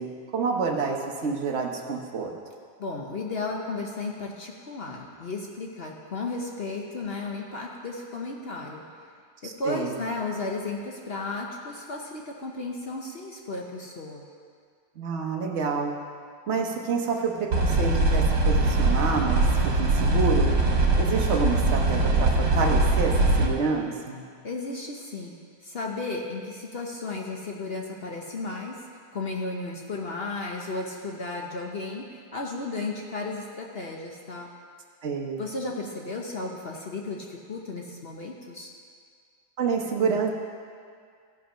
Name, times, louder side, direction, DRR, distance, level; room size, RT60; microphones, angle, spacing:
voice 1, 0.0-2.3 9.4-10.0 15.0-15.9 16.5-20.5 21.0-24.2 35.0-35.4 39.6-40.3, right 5 dB, 45° right, 1 dB, 1.1 m, -28 dB
voice 2, 2.8-8.8 9.4-14.2 24.4-25.4 25.6-28.8 29.1-34.5 35.4-38.7, left 3 dB, 50° left, 0 dB, 0.7 m, -34 dB
sound 1, 17.5-23.5, right 2 dB, 60° right, 1.7 m, -22 dB
15.5 x 5.5 x 5.6 m, 2.1 s
omnidirectional pair, 2.1 m